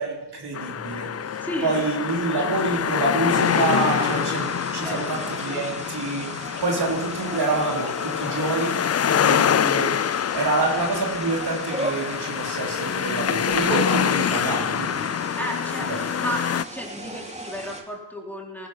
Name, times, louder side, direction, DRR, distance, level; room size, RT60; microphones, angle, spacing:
voice 1, 0.0-10.0 10.3-15.1 15.9-16.0, right 3 dB, 65° right, -2 dB, 4.3 m, -27 dB
sound 1, 0.5-16.6, left 8 dB, 35° left, 0.4 m, -25 dB
voice 2, 1.4-1.9 4.8-5.3 15.3-18.7, equal, 5° left, -1 dB, 4.2 m, -33 dB
sound 2, 3.3-17.8, right 1 dB, 15° right, 3.1 m, -37 dB
19.5 x 12.5 x 5.9 m, 1.1 s
cardioid pair, 45°, 44 cm